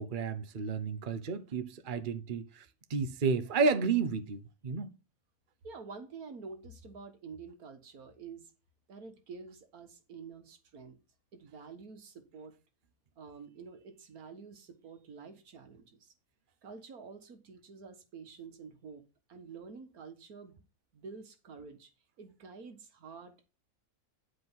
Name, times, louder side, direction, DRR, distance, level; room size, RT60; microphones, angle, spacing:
voice 1, 0.0-4.9, right 5 dB, 40° right, 1.0 m, -32 dB
voice 2, 5.6-8.5 8.9-11.0 11.3-12.5 13.2-16.1 16.6-19.0 19.3-20.6 20.9-21.9 22.2-23.5, right 5 dB, 90° right, 1.9 m, -48 dB
10.0 x 4.9 x 5.5 m
omnidirectional pair, 1.5 m